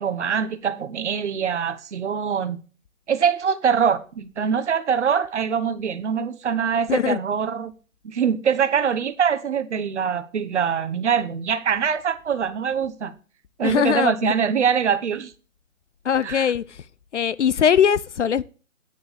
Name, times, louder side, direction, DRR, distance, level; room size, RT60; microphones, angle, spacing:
voice 1, 0.0-2.6 3.1-7.7 8.0-13.1 13.6-15.3 16.2-16.5, right 7 dB, 55° right, 1.1 m, -23 dB
voice 2, 6.9-7.2 13.6-14.3 16.0-16.8 17.1-18.4, left 8 dB, 60° left, 0.6 m, -21 dB
9.4 x 9.4 x 3.4 m
hypercardioid pair, 155°, 41 cm